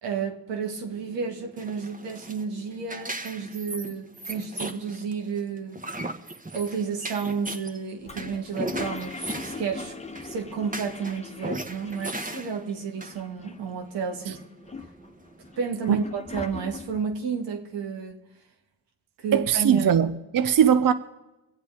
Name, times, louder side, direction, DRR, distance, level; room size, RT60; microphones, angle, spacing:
voice 1, 0.0-5.8 6.5-9.9 10.2-14.4 15.6-18.2 19.2-19.9, right 6 dB, 85° right, 2.0 m, -31 dB
sound 1, 0.8-16.0, right 1 dB, 20° right, 1.5 m, -38 dB
Toilet flush, 8.0-12.4 12.7-12.8 13.0-13.8 14.3-17.2, left 3 dB, 15° left, 1.2 m, -40 dB
voice 2, 19.3-20.9, right 8 dB, 50° right, 0.8 m, -20 dB
23.5 x 8.0 x 5.0 m
supercardioid pair, 50°, 42 cm